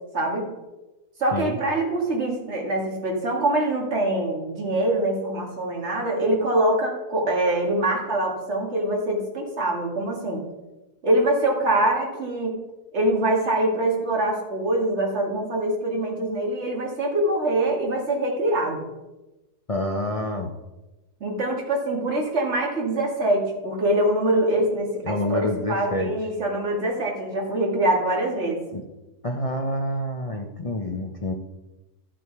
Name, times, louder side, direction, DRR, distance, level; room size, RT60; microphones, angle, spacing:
voice 1, 0.1-0.5 1.2-10.4 11.0-12.6 12.9-18.8 21.2-28.6, right 1 dB, 45° right, 0 dB, 2.2 m, -24 dB
voice 2, 19.7-20.5 25.0-26.1 28.7-28.8 29.2-31.3, left 1 dB, 45° left, 2 dB, 0.4 m, -27 dB
12.5 x 6.3 x 4.6 m, 1.1 s
omnidirectional pair, 1.6 m